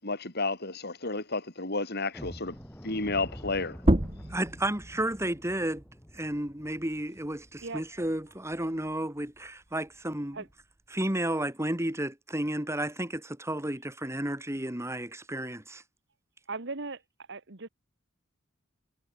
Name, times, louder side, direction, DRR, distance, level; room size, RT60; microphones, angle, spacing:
voice 1, 0.0-2.5 2.8-3.8, left 3 dB, 55° left, 7.3 m, -31 dB
sound 1, 2.1-8.9 9.2-9.4 9.8-10.0 10.4-10.6, equal, 10° left, 6.9 m, -48 dB
sound 2, 3.8-9.0 9.4-11.2, right 1 dB, 30° right, 1.9 m, -33 dB
voice 2, 4.3-5.8 6.1-10.5 10.9-15.8, right 1 dB, 15° right, 3.1 m, -32 dB
voice 3, 16.5-17.0 17.3-17.7, right 3 dB, 60° right, 1.7 m, -37 dB
head